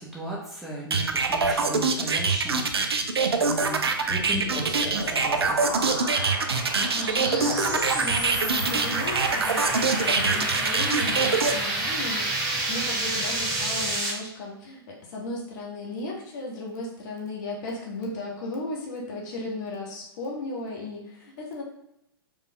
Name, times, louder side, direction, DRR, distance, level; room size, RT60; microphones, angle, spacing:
voice 1, 0.0-2.8 3.3-6.0, right 1 dB, ahead, -6 dB, 0.9 m, -36 dB
sound 1, 0.9-11.5, right 4 dB, 80° right, 0.5 m, -24 dB
sound 2, 3.8-14.1, right 2 dB, 35° right, 1.4 m, -30 dB
voice 2, 6.5-21.6, left 2 dB, 45° left, -2 dB, 1.2 m, -35 dB
sound 3, 7.3-14.0, equal, 25° left, 0.7 m, -43 dB
4.6 x 3.3 x 2.3 m, 0.80 s
figure-of-eight pair, 110°, 13 cm